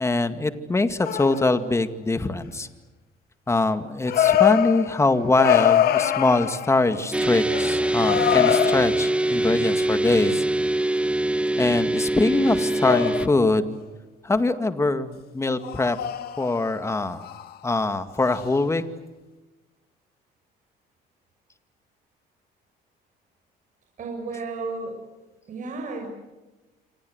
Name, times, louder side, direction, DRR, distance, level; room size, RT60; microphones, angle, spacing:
voice 1, 0.0-2.7 3.5-10.4 11.6-13.8 14.2-16.0 16.4-17.3 17.6-18.8, left 2 dB, 15° left, 9 dB, 2.2 m, -23 dB
sound 1, 1.1-1.7 4.1-7.2 7.5-9.2 12.4-13.5 15.6-16.8 17.2-17.6 18.3-18.5, left 11 dB, 65° left, 1.9 m, -24 dB
sound 2, 7.1-13.3, right 1 dB, 5° right, 1.3 m, -23 dB
voice 2, 24.0-25.0 25.5-26.1, right 3 dB, 50° right, 2 dB, 6.6 m, -32 dB
27.0 x 27.0 x 8.1 m, 1.1 s
cardioid pair, 110°, 17 cm